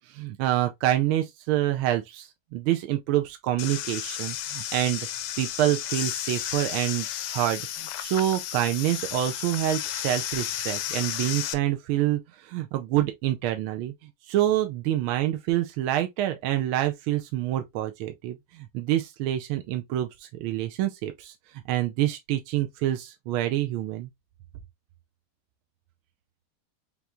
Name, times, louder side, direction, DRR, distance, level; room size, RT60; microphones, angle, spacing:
voice 1, 0.1-5.1 5.4-7.1 7.3-13.9 14.3-21.3 21.7-24.1, right 13 dB, 85° right, 1.4 m, -27 dB
sound 1, 3.6-11.5, left 11 dB, 70° left, 1.1 m, -33 dB
5.4 x 3.0 x 2.3 m
omnidirectional pair, 2.3 m